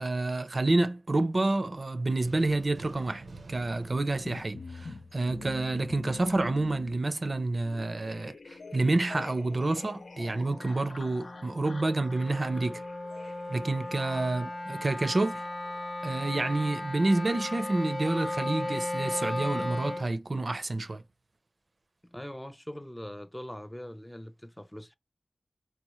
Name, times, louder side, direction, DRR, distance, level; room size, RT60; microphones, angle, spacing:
voice 1, 0.0-12.8 13.5-15.4 16.0-21.0, right 2 dB, 50° right, 0.5 m, -29 dB
sound 1, 2.2-5.7, right 3 dB, 90° right, 0.7 m, -48 dB
sound 2, 4.2-19.4, left 3 dB, 85° left, 0.4 m, -48 dB
Wind instrument woodwind instrument, 8.5-20.1, left 1 dB, 35° left, 0.7 m, -37 dB
voice 2, 14.2-14.5 22.0-24.9, equal, 10° left, 0.4 m, -42 dB
4.2 x 2.1 x 2.9 m
wide cardioid pair, 55°, 0 cm